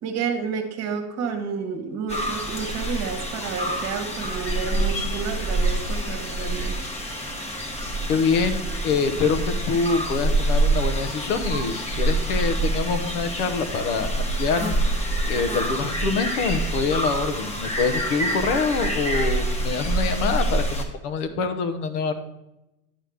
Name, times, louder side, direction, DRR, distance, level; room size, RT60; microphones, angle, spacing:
voice 1, 0.0-6.8, right 6 dB, 35° right, 6 dB, 1.2 m, -30 dB
sound 1, 2.1-20.8, right 1 dB, 15° left, 0.9 m, -26 dB
voice 2, 8.1-22.1, left 5 dB, 90° left, 8 dB, 1.1 m, -25 dB
9.6 x 6.5 x 3.5 m, 0.93 s
supercardioid pair, 145°, 44 cm